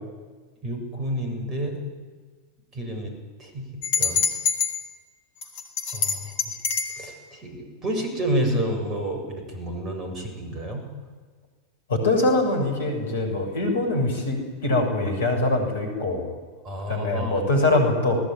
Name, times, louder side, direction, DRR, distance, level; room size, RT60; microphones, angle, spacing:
voice 1, 0.6-1.8 2.7-3.1 3.4-4.2 5.9-6.3 7.0-10.8 16.6-17.4, right 1 dB, 25° right, 5 dB, 7.8 m, -29 dB
sound 1, 3.8-4.7 5.4-7.0, left 6 dB, 50° left, 5.3 m, -24 dB
voice 2, 11.9-16.3 16.9-18.2, left 2 dB, 65° left, 4 dB, 7.2 m, -23 dB
30.0 x 19.5 x 9.8 m, 1.4 s
figure-of-eight pair, 90°, 0 cm